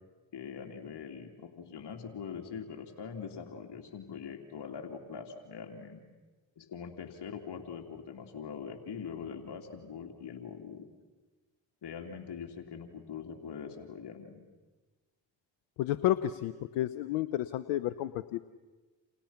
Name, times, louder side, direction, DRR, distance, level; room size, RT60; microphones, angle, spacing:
voice 1, 0.3-6.0 6.6-10.9 11.8-14.5, left 6 dB, 60° left, 2 dB, 3.1 m, -43 dB
voice 2, 15.8-18.4, left 13 dB, 90° left, 14 dB, 0.8 m, -31 dB
29.0 x 28.5 x 5.8 m, 1.2 s
hypercardioid pair, 45°, 46 cm